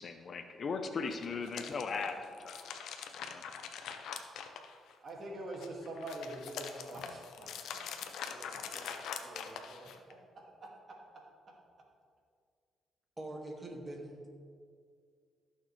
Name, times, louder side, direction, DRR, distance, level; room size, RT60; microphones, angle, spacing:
voice 1, 0.0-2.8 3.2-3.4, left 4 dB, 50° left, 7 dB, 0.8 m, -38 dB
sound 1, 1.0-5.1 5.5-10.1, left 7 dB, 80° left, 0.7 m, -44 dB
voice 2, 5.0-7.6 8.3-9.9 10.6-10.7, right 1 dB, 45° right, -1 dB, 2.2 m, -45 dB
voice 3, 13.2-14.3, right 1 dB, 20° right, 0 dB, 2.0 m, -43 dB
15.0 x 6.6 x 3.3 m, 2.1 s
cardioid pair, 90°, 0 cm